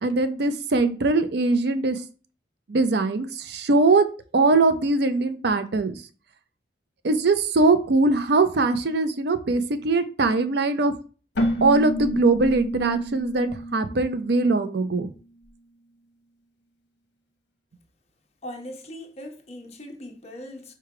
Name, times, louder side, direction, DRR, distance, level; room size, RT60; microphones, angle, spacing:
voice 1, 0.0-2.0 2.7-4.1 4.3-6.0 7.0-10.9 11.6-15.1, right 3 dB, 65° right, 0.5 m, -21 dB
Keyboard (musical), 11.3-15.0, equal, 75° left, 0.9 m, -29 dB
voice 2, 18.4-20.7, left 1 dB, 35° left, 0.9 m, -39 dB
4.7 x 2.3 x 4.8 m
head